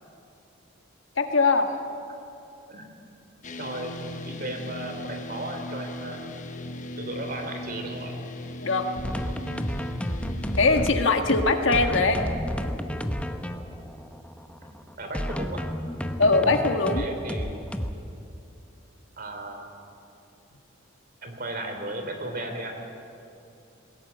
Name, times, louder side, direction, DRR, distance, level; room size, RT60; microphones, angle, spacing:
voice 1, 1.2-1.7 8.6-8.9 10.6-12.2 16.2-17.0, left 3 dB, 70° left, 5 dB, 1.8 m, -21 dB
sound 1, 3.4-11.0, left 1 dB, 40° left, 1.2 m, -38 dB
voice 2, 3.5-6.2 7.0-8.1 14.6-15.6 17.0-17.6 19.2-19.7 21.2-22.8, right 1 dB, 45° right, 5 dB, 3.1 m, -35 dB
sound 2, 9.0-17.9, equal, 5° left, 0.9 m, -31 dB
21.0 x 17.5 x 9.4 m, 2.7 s
head